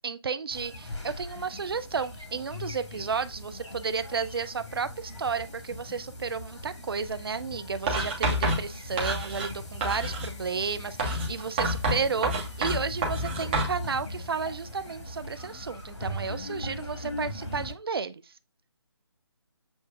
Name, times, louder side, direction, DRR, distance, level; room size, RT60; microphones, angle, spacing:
voice 1, 0.0-18.2, right 5 dB, 55° right, 0.5 m, -32 dB
sound 1, 0.5-17.7, left 1 dB, 80° left, 1.6 m, -40 dB
Writing, 7.9-9.5 9.8-10.4 11.0-13.8, right 1 dB, 20° right, 1.1 m, -28 dB
7.7 x 2.6 x 2.4 m
figure-of-eight pair, 155°, 15 cm